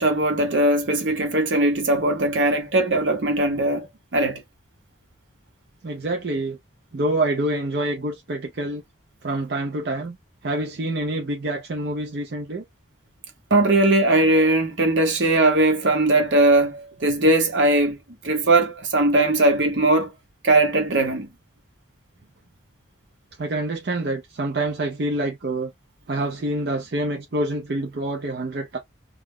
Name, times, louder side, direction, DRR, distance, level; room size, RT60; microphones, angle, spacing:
voice 1, 0.0-4.4 13.5-18.0 18.2-20.1 20.4-21.3, right 2 dB, 80° right, 1.0 m, -19 dB
voice 2, 5.8-6.6 6.9-8.8 9.2-10.2 10.4-12.6 23.4-25.7 26.1-28.8, right 1 dB, 55° right, 0.5 m, -26 dB
2.4 x 2.0 x 3.5 m
head